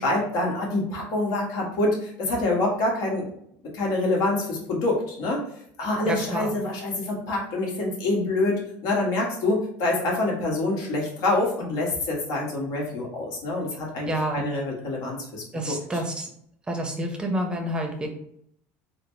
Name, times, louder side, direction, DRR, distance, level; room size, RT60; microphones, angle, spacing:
voice 1, 0.0-3.2 3.7-5.4 5.8-15.4, left 2 dB, 65° left, -2 dB, 1.3 m, -26 dB
voice 2, 6.0-6.5 14.1-14.5 15.5-16.3 16.7-18.1, right 1 dB, 15° right, 2 dB, 0.7 m, -28 dB
3.9 x 2.1 x 3.2 m, 0.69 s
supercardioid pair, 125°, 6 cm